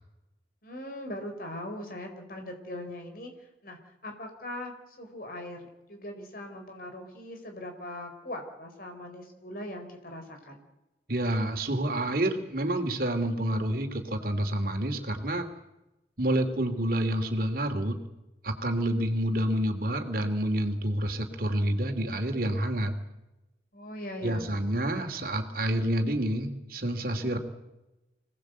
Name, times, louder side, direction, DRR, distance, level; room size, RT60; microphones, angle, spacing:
voice 1, 0.6-10.6 23.7-24.5 27.0-27.4, left 1 dB, 50° left, 4 dB, 4.3 m, -40 dB
voice 2, 11.1-15.5 16.2-18.0 18.4-22.9 24.2-27.4, right 1 dB, 50° right, 5 dB, 2.7 m, -28 dB
26.0 x 18.5 x 8.1 m, 0.97 s
head